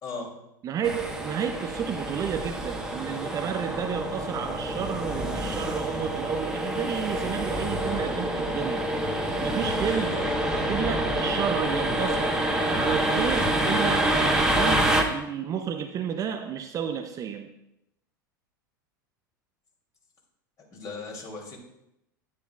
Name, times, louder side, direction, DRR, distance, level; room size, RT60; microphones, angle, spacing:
voice 1, 0.0-0.4 9.8-10.4 20.7-21.6, left 3 dB, 35° left, 2.8 m, -37 dB
voice 2, 0.6-8.9 9.4-10.2 10.5-12.4 12.7-17.5, right 8 dB, 30° right, 0.6 m, -31 dB
sound 1, 0.8-15.0, right 1 dB, 5° right, 1.2 m, -27 dB
10.0 x 9.4 x 2.4 m
figure-of-eight pair, 85°, 11 cm